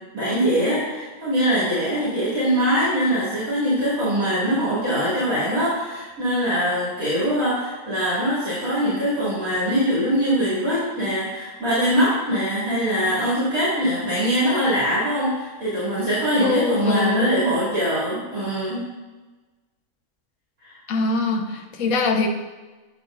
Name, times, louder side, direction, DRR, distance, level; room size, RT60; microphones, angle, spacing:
voice 1, 0.1-18.8 20.6-20.8, equal, 70° right, -11 dB, 3.0 m, -22 dB
voice 2, 16.4-17.3 20.9-22.3, left 4 dB, 70° left, 3 dB, 1.2 m, -23 dB
8.0 x 6.8 x 2.5 m, 1.2 s
omnidirectional pair, 1.5 m